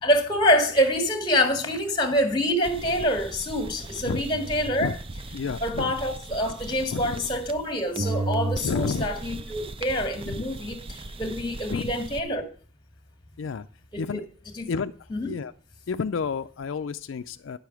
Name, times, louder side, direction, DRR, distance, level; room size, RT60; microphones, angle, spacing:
voice 1, 0.0-5.0 5.6-12.4 13.9-14.0 14.5-14.7 15.1-15.4, equal, 20° left, 1.8 m, -26 dB
sound 1, 2.6-7.7 8.0-12.2, right 2 dB, 25° right, 0.5 m, -35 dB
voice 2, 5.3-5.9 6.9-7.2 8.6-9.1 10.3-10.4 11.7-11.9 13.4-13.7 14.0-14.3 14.7-14.9 15.2-15.5 15.9-17.6, left 5 dB, 70° left, 0.4 m, -30 dB
10.5 x 6.9 x 5.8 m
head